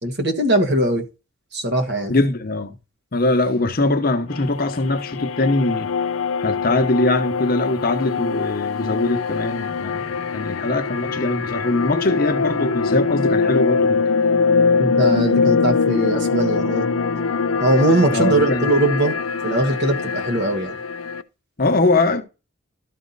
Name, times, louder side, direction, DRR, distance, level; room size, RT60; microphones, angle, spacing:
voice 1, 0.0-1.0 1.5-2.1 14.8-16.9 17.6-19.2 19.4-20.8, right 1 dB, 55° right, 1.4 m, -20 dB
voice 2, 2.1-2.7 3.1-5.9 6.4-14.0 18.1-18.7 21.6-22.2, left 2 dB, 45° left, 0.9 m, -21 dB
sound 1, 4.3-21.2, left 5 dB, 75° left, 0.5 m, -22 dB
12.5 x 4.2 x 4.0 m
head